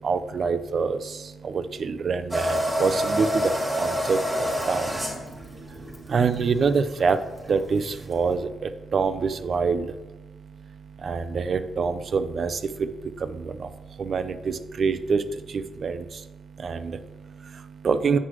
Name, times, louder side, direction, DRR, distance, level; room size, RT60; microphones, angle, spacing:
voice 1, 0.0-18.2, right 5 dB, 50° right, 11 dB, 0.4 m, -27 dB
sound 1, 2.3-8.3, equal, 10° right, 1.7 m, -28 dB
8.0 x 6.0 x 3.0 m, 1.1 s
cardioid pair, 110°, 0 cm